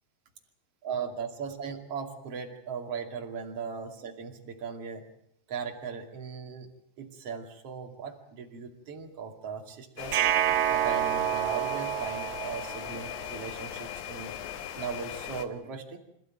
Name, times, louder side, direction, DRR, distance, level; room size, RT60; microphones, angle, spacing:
voice 1, 0.8-5.0 5.5-6.7 7.0-10.2 10.7-14.3 14.7-16.0, right 6 dB, 40° right, 3 dB, 3.1 m, -38 dB
sound 1, 10.0-15.5, left 10 dB, 75° left, 3.3 m, -39 dB
sound 2, 10.1-13.2, right 12 dB, 90° right, 3.4 m, -28 dB
25.5 x 15.0 x 9.0 m, 0.74 s
omnidirectional pair, 4.8 m